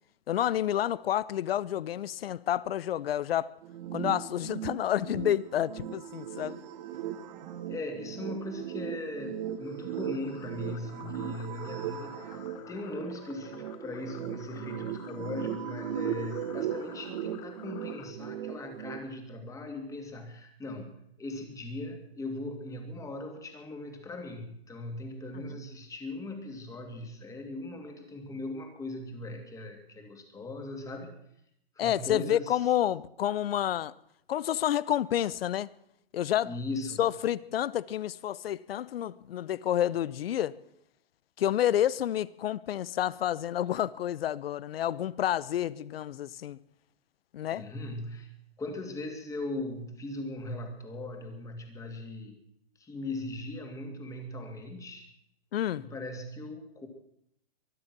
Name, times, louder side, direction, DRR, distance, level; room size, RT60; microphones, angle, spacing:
voice 1, 0.3-3.5 3.9-6.6 25.3-25.4 31.8-33.9 34.3-35.7 36.1-36.5 37.0-40.5 41.4-46.6 47.3-47.6 55.5-55.9, left 11 dB, 70° left, 0.8 m, -29 dB
sound 1, 3.6-19.0, right 9 dB, 45° right, 1.4 m, -38 dB
voice 2, 7.7-31.2 31.7-32.7 36.4-37.0 47.5-48.3 48.6-52.4 52.8-55.1 55.8-56.9, left 2 dB, 10° left, 2.4 m, -39 dB
sound 2, 9.5-18.1, left 13 dB, 35° left, 1.0 m, -52 dB
23.0 x 10.0 x 6.1 m
hypercardioid pair, 150°, 31 cm